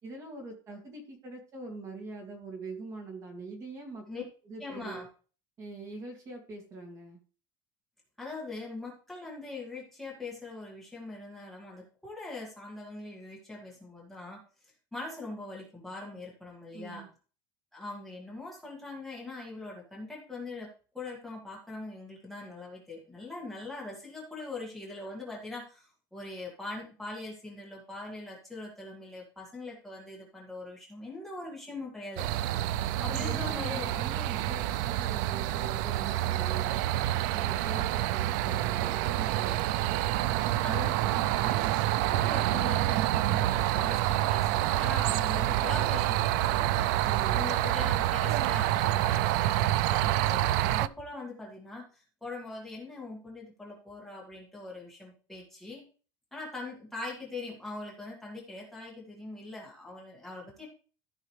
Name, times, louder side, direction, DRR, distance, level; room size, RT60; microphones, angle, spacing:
voice 1, 0.0-5.0 5.6-7.2 16.7-17.1 32.9-36.9 37.3-39.6 47.0-47.4, right 3 dB, 30° right, 2 dB, 2.3 m, -43 dB
voice 2, 4.6-5.1 8.2-17.1 17.7-32.2 33.0-34.0 40.6-41.6 42.1-46.9 47.3-55.8 56.3-60.7, left 3 dB, ahead, -4 dB, 1.9 m, -42 dB
sound 1, 32.2-50.9, right 14 dB, 65° right, 0.4 m, -27 dB
14.0 x 5.6 x 3.2 m, 0.38 s
cardioid pair, 175°, 11 cm